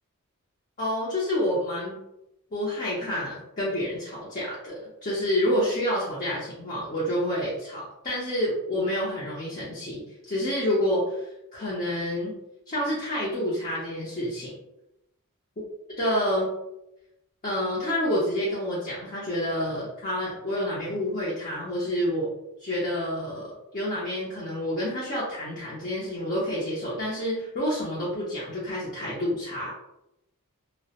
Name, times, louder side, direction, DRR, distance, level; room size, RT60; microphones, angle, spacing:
voice 1, 0.8-2.0 2.5-12.3 12.7-14.5 16.0-16.5 17.4-22.3 22.6-29.7, equal, 35° left, -7 dB, 0.6 m, -28 dB
2.3 x 2.0 x 2.8 m, 0.87 s
head